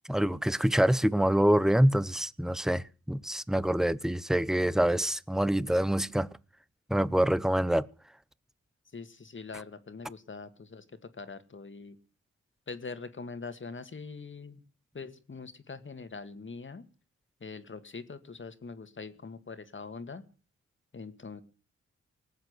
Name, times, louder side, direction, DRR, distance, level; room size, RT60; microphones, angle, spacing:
voice 1, 0.1-6.3 6.9-7.9, right 1 dB, ahead, 0.7 m, -26 dB
voice 2, 8.9-10.8 11.2-12.0 12.7-14.6 14.9-16.9 17.4-20.2 20.9-21.4, left 4 dB, 40° left, 1.9 m, -43 dB
19.0 x 8.1 x 8.1 m
cardioid pair, 65°, 29 cm